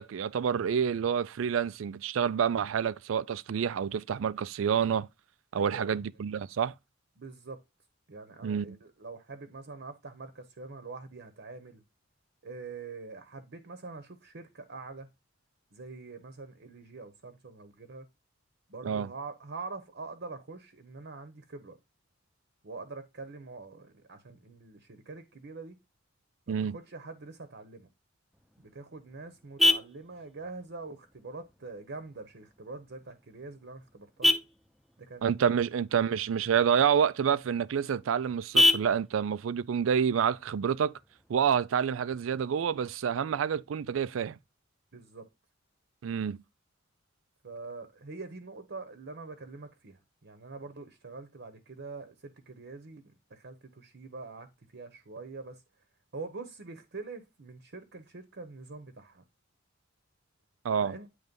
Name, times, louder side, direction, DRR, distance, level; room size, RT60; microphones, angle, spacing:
voice 1, 0.0-5.1 5.5-6.7 8.4-8.8 18.8-19.1 26.5-26.8 35.2-40.9 41.3-44.4 46.0-46.4 60.6-60.9, right 7 dB, 80° right, 0.4 m, -28 dB
voice 2, 5.6-5.9 7.2-7.6 8.1-11.8 12.4-15.1 15.7-18.1 18.7-21.8 22.6-25.8 26.5-27.9 28.6-34.3 35.0-35.3 44.9-45.3 47.4-53.0 53.3-55.6 56.1-59.2 60.8-61.1, right 3 dB, 60° right, 0.9 m, -44 dB
Vehicle horn car horn honking, 28.3-41.3, left 1 dB, ahead, 0.7 m, -32 dB
9.4 x 3.2 x 5.2 m
head